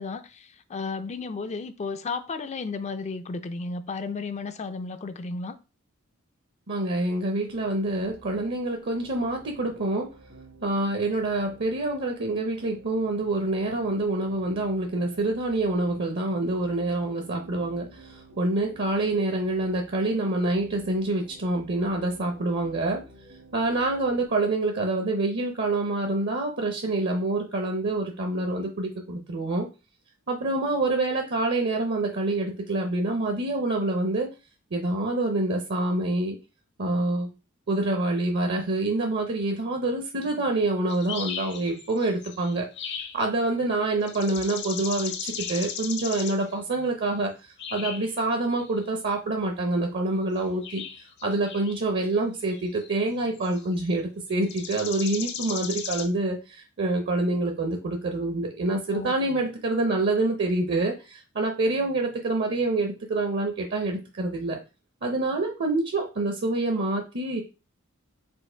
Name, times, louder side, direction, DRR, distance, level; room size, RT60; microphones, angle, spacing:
voice 1, 0.0-5.6 58.9-59.1, left 4 dB, 35° left, 0.4 m, -33 dB
voice 2, 6.7-10.1 10.6-23.0 23.5-29.7 30.3-34.3 34.7-36.4 36.8-37.3 37.7-42.6 43.1-50.8 51.2-64.6 65.0-67.4, right 2 dB, 55° right, 0.7 m, -26 dB
sound 1, 7.5-24.3, right 2 dB, 75° right, 1.5 m, -51 dB
sound 2, 40.9-43.2 44.0-46.6 47.6-48.2 48.6-48.8 50.4-51.8 52.5-53.9 54.4-56.1, left 7 dB, 55° left, 0.7 m, -36 dB
4.5 x 2.5 x 4.4 m
head